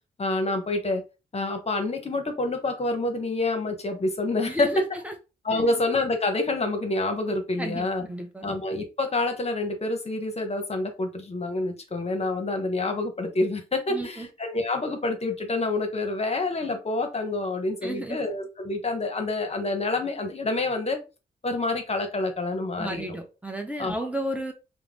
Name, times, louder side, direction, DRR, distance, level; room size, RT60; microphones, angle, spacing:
voice 1, 0.2-1.0 1.3-4.7 5.4-8.1 8.4-21.0 21.4-23.0 23.8-23.9, left 2 dB, 35° left, 6 dB, 0.8 m, -27 dB
voice 2, 4.4-5.1 5.5-5.8 7.6-8.5 13.9-14.3 17.8-18.2 22.8-24.5, right 1 dB, 10° right, 3 dB, 0.6 m, -33 dB
2.4 x 2.0 x 3.4 m, 0.29 s
supercardioid pair, 45°, 17 cm